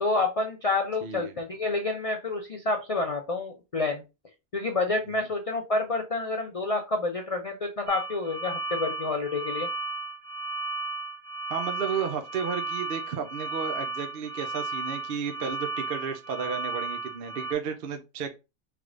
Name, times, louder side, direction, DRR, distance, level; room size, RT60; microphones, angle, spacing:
voice 1, 0.0-4.0 4.5-9.7, left 3 dB, 55° left, 4 dB, 0.3 m, -28 dB
voice 2, 1.0-1.3 5.1-5.3 11.5-18.3, right 6 dB, 55° right, 6 dB, 0.7 m, -33 dB
sound 1, 7.9-17.5, right 3 dB, 80° right, 1.3 m, -34 dB
3.3 x 3.2 x 3.7 m, 0.26 s
omnidirectional pair, 1.4 m